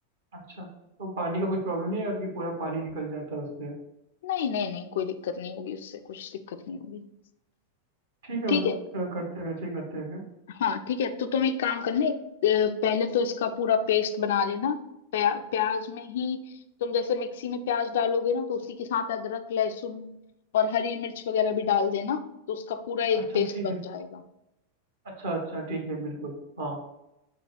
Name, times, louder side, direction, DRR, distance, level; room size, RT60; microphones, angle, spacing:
voice 1, 1.0-3.8 8.2-10.2 23.1-23.8 25.2-26.8, right 2 dB, 60° right, 1 dB, 1.1 m, -32 dB
voice 2, 4.2-7.0 8.5-8.8 10.5-14.8 15.1-16.4 16.8-20.2 20.5-24.2, left 7 dB, 55° left, 9 dB, 0.3 m, -28 dB
4.2 x 2.3 x 4.6 m, 0.89 s
figure-of-eight pair, 90°, 0 cm